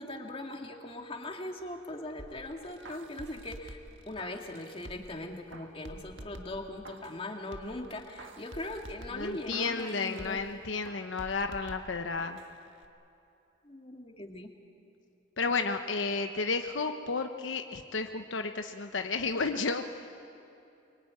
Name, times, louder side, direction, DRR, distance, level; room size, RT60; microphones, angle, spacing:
voice 1, 0.0-3.8 4.1-10.4 13.6-14.5, left 1 dB, 30° left, 3 dB, 2.2 m, -40 dB
sound 1, 2.2-5.2 5.5-7.2 7.5-10.5 10.8-12.5 12.8-12.9, right 1 dB, 70° right, 1.7 m, -48 dB
voice 2, 9.1-12.4 15.4-19.8, left 4 dB, 75° left, 6 dB, 1.0 m, -32 dB
24.5 x 23.0 x 9.7 m, 2.7 s
head